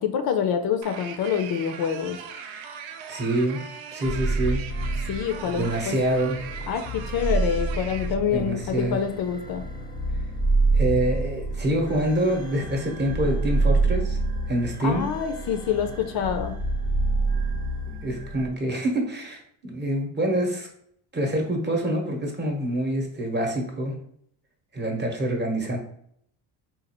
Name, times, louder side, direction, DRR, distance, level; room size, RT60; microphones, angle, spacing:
voice 1, 0.0-2.2 5.1-5.9 6.7-9.6 14.8-16.5, left 7 dB, 55° left, 7 dB, 0.5 m, -26 dB
sound 1, 0.8-8.1, right 7 dB, 80° right, 0.6 m, -40 dB
voice 2, 3.1-3.6 3.9-4.9 5.5-6.4 8.3-9.0 10.7-14.2 14.5-15.1 18.0-20.7 21.1-24.0 24.7-25.8, right 1 dB, 25° right, 1 dB, 0.9 m, -26 dB
sound 2, 4.0-18.5, right 3 dB, 10° left, 0.5 m, -27 dB
3.9 x 2.5 x 2.9 m, 0.68 s
cardioid pair, 110°, 46 cm